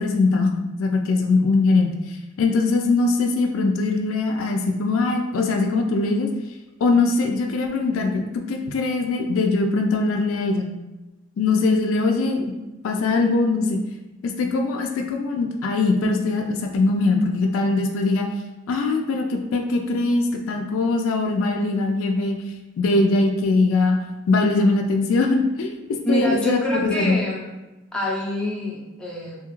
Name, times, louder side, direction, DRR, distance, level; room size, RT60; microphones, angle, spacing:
voice 1, 0.0-1.9 2.4-6.3 6.8-10.7 11.4-12.5 12.8-13.8 14.2-18.3 18.7-22.4 22.8-24.0 24.3-27.2, left 3 dB, 85° left, 3 dB, 0.3 m, -21 dB
voice 2, 26.1-27.5 27.9-29.4, left 1 dB, 5° left, -5 dB, 0.5 m, -26 dB
2.7 x 2.4 x 3.0 m, 1.1 s
head